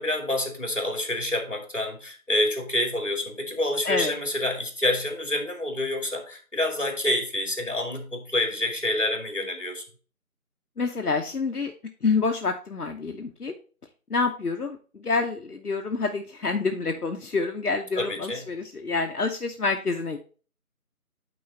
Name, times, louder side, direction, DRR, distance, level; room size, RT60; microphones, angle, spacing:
voice 1, 0.0-9.8 18.0-18.5, left 1 dB, 55° left, 5 dB, 2.1 m, -27 dB
voice 2, 10.8-11.7 12.0-13.5 14.1-20.2, left 4 dB, 85° left, 4 dB, 0.9 m, -27 dB
9.3 x 3.9 x 3.9 m, 0.39 s
figure-of-eight pair, 175°, 45 cm